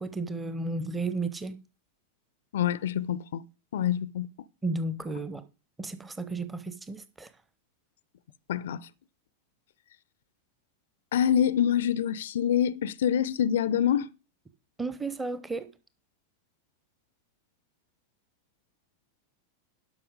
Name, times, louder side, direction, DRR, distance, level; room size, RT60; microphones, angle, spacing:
voice 1, 0.0-1.6 4.6-5.4 5.8-7.3 14.8-15.7, right 3 dB, 10° right, 0.8 m, -33 dB
voice 2, 2.5-3.4 3.7-4.3 8.5-8.8 11.1-14.1, left 9 dB, 60° left, 0.4 m, -26 dB
12.0 x 5.5 x 5.1 m
figure-of-eight pair, 90°, 0 cm